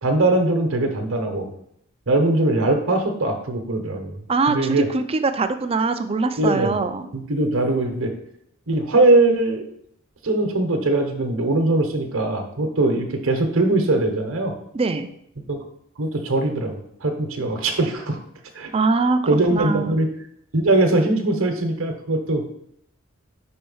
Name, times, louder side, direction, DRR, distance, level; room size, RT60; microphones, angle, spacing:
voice 1, 0.0-1.5 2.1-4.2 4.5-4.9 6.4-6.8 7.1-8.1 8.7-9.6 10.2-14.5 15.5-15.6 16.0-18.2 18.5-18.7 19.2-20.1 20.5-22.5, right 2 dB, 60° right, 4 dB, 1.0 m, -21 dB
voice 2, 4.3-7.1 14.7-15.1 18.7-19.2 19.5-20.0, right 3 dB, 25° right, 9 dB, 0.4 m, -22 dB
5.5 x 4.3 x 5.5 m, 0.72 s
head